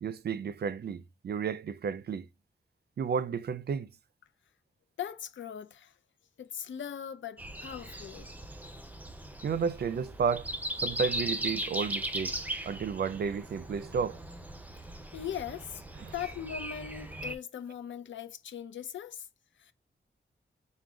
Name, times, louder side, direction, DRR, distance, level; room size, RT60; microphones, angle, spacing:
voice 1, 0.0-2.3 3.0-3.9 9.4-10.5 10.8-12.4 12.7-14.2 16.0-16.1, right 6 dB, 60° right, 0.4 m, -32 dB
voice 2, 5.0-5.9 6.4-8.3 15.1-15.8 16.1-19.3 19.6-19.7, left 9 dB, 85° left, 0.5 m, -40 dB
Breathing, 7.4-17.4, right 1 dB, 10° right, 0.6 m, -38 dB
4.7 x 2.2 x 3.7 m
wide cardioid pair, 105°, 19 cm